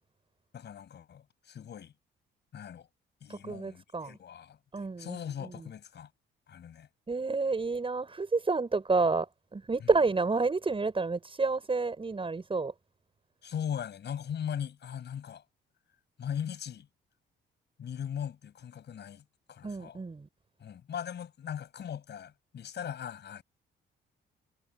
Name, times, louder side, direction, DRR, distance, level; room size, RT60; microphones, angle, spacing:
voice 1, 0.5-1.9 2.5-2.9 3.2-6.1 6.5-6.9 9.8-9.9 13.4-15.4 16.2-16.9 17.8-20.0 20.6-23.4, left 8 dB, 60° left, 7.6 m, -39 dB
voice 2, 3.3-4.2 4.7-5.7 7.1-12.7 19.6-20.3, right 3 dB, 25° right, 7.1 m, -30 dB
cardioid pair, 90°, 20 cm